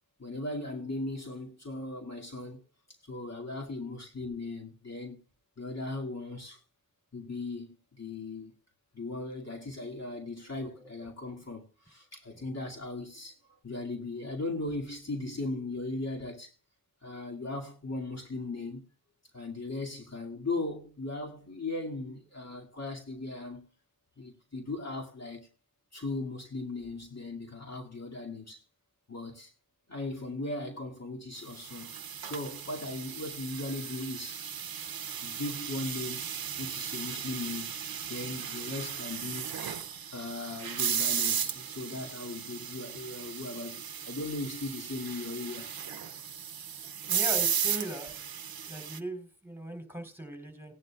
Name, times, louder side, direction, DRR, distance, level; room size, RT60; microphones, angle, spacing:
voice 1, 0.2-2.6 3.0-5.2 5.6-6.6 7.1-8.5 8.9-13.4 13.6-16.5 17.0-18.9 19.3-23.7 24.2-25.5 25.9-28.6 29.1-29.5 29.9-34.4 35.2-36.2 36.6-37.7 38.1-39.5 40.1-45.7, left 2 dB, 50° left, 2.4 m, -38 dB
sound 1, 31.5-49.0, right 8 dB, 90° right, 0.7 m, -35 dB
voice 2, 47.1-48.1 48.7-50.7, right 1 dB, 5° right, 4.1 m, -39 dB
18.5 x 11.0 x 2.4 m
cardioid pair, 45°, 35 cm